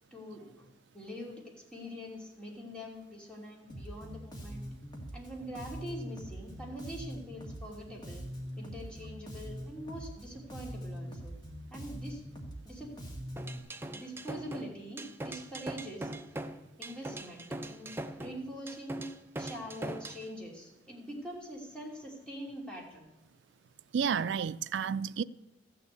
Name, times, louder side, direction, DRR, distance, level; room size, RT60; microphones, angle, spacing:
voice 1, 0.1-0.7 0.9-1.4 1.7-4.6 5.1-8.2 8.6-11.3 11.7-12.2 12.6-12.9 13.9-16.1 16.8-19.1 19.4-23.1, equal, 5° left, 2.8 m, -44 dB
Bass guitar, 3.7-13.6, equal, 25° left, 1.9 m, -43 dB
sound 1, 13.4-20.2, right 1 dB, 10° right, 0.6 m, -41 dB
voice 2, 23.9-25.2, right 7 dB, 65° right, 0.4 m, -31 dB
14.0 x 6.8 x 8.2 m
head